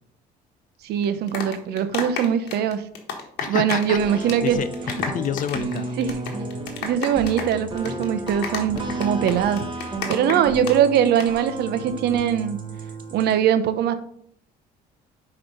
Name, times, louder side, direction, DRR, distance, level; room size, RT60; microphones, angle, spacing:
voice 1, 0.8-2.8 3.5-4.6 6.0-6.2 6.8-9.7 10.1-12.6 13.1-13.9, right 9 dB, 75° right, 12 dB, 0.8 m, -21 dB
sound 1, 1.0-4.0 4.2-4.5 4.7-10.7 11.0-11.3, left 6 dB, 80° left, 1.5 m, -31 dB
voice 2, 3.4-5.9, left 8 dB, 50° left, 12 dB, 0.7 m, -29 dB
sound 2, 3.9-13.3, right 2 dB, 30° right, 1.6 m, -33 dB
6.0 x 4.9 x 5.5 m, 0.68 s
cardioid pair, 110°, 17 cm